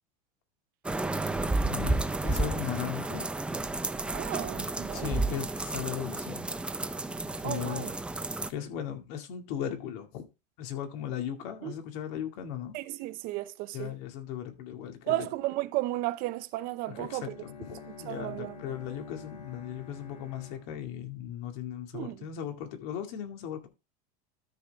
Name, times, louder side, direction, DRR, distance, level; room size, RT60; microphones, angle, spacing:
sound 1, 0.8-8.5, right 2 dB, 5° right, 0.4 m, -32 dB
voice 1, 1.6-3.3 4.9-6.5 7.4-7.9 8.5-10.2 10.6-12.8 13.7-15.3 16.9-23.7, left 10 dB, 55° left, 2.2 m, -37 dB
voice 2, 4.1-5.2 7.4-7.9 11.6-11.7 12.7-13.9 15.1-17.3 18.1-18.5 21.9-22.2, right 17 dB, 45° right, 0.7 m, -34 dB
Bowed string instrument, 16.9-21.9, left 5 dB, 80° left, 4.0 m, -49 dB
13.0 x 5.5 x 3.4 m
supercardioid pair, 145°, 20 cm